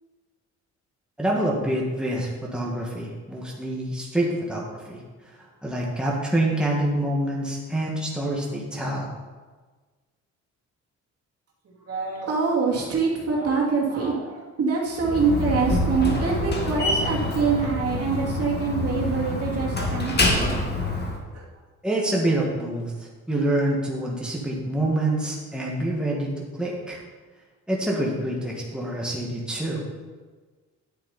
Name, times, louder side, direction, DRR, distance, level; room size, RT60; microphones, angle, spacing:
voice 1, 1.2-9.1 21.8-27.0 27.7-29.8, right 1 dB, 5° right, -3 dB, 1.9 m, -26 dB
voice 2, 11.6-20.5 21.3-21.4, right 5 dB, 50° right, -3 dB, 2.6 m, -25 dB
Slam, 15.0-21.2, left 2 dB, 35° left, 2.0 m, -26 dB
10.0 x 7.7 x 4.3 m, 1.4 s
cardioid pair, 90°, 30 cm